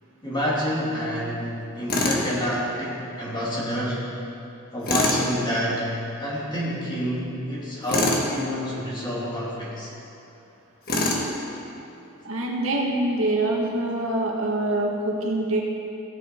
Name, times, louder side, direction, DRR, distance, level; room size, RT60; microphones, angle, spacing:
voice 1, 0.2-4.0 4.7-5.9 6.2-9.9, equal, 20° left, -6 dB, 2.6 m, -28 dB
Tools, 1.9-2.3 4.8-5.2 7.9-8.3 10.9-11.3, left 2 dB, 45° left, 1.5 m, -23 dB
voice 2, 12.2-15.6, right 2 dB, 75° right, -1 dB, 1.7 m, -25 dB
17.0 x 8.0 x 4.5 m, 2.7 s
head